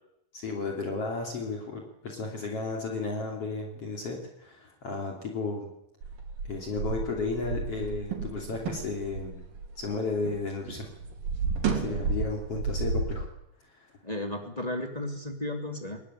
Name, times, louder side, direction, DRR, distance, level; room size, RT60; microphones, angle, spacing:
voice 1, 0.3-5.7 6.5-9.4 9.8-10.9 11.7-13.3 13.8-13.9, left 3 dB, 45° left, 1 dB, 3.6 m, -33 dB
sound 1, 6.0-10.4 10.7-13.2, right 4 dB, 75° right, 4.7 m, -32 dB
voice 2, 11.7-12.2 14.0-16.0, left 1 dB, 15° left, 4 dB, 2.1 m, -35 dB
21.5 x 18.0 x 10.0 m, 0.86 s
omnidirectional pair, 4.0 m